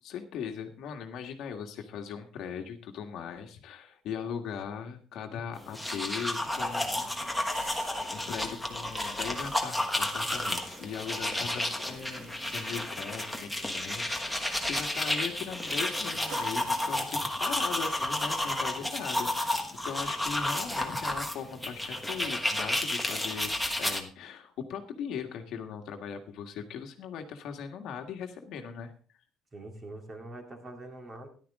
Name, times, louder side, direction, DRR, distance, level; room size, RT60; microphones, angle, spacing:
voice 1, 0.0-23.5 23.8-28.9, left 7 dB, 55° left, 5 dB, 1.7 m, -39 dB
sound 1, 5.6-24.0, left 1 dB, ahead, 1.3 m, -32 dB
sound 2, 6.4-18.7, right 6 dB, 90° right, 2.5 m, -53 dB
voice 2, 29.5-31.3, right 2 dB, 20° right, 3 dB, 2.3 m, -44 dB
14.0 x 11.5 x 3.7 m, 0.42 s
cardioid pair, 180°, 0 cm